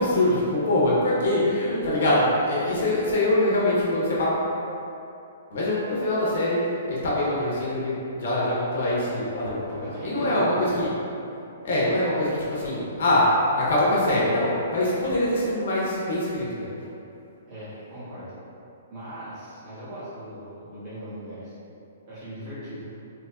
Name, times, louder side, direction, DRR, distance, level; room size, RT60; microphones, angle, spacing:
voice 1, 0.0-4.3 5.5-6.6 6.9-10.9 11.6-13.3 13.6-16.7, left 1 dB, 55° left, -6 dB, 0.9 m, -24 dB
voice 2, 9.7-10.8 17.5-18.3 18.9-21.5 22.1-22.9, equal, 25° right, -13 dB, 1.4 m, -38 dB
3.9 x 3.0 x 2.3 m, 2.8 s
hypercardioid pair, 175°, 0 cm